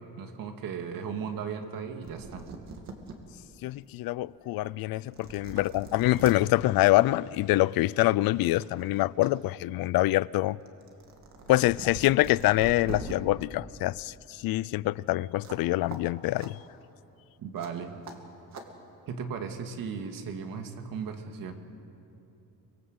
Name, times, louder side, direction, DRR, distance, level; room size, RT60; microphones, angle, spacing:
voice 1, 0.2-2.5 5.5-5.6 17.4-18.0 19.1-21.5, right 6 dB, 70° right, 2.2 m, -36 dB
sound 1, 1.8-1.9 2.0-3.2 3.7-3.8 4.6-4.7 5.1-6.4 7.6-7.8 8.2-9.3 9.6-13.1 15.4-15.6 15.9-16.0 16.4-16.5 17.6-17.7 18.0-18.2 18.5-18.7, right 4 dB, 50° right, 2.4 m, -43 dB
voice 2, 3.6-10.6 11.5-16.6, left 17 dB, 80° left, 0.5 m, -25 dB
24.5 x 23.0 x 8.0 m
cardioid pair, 165°, 35 cm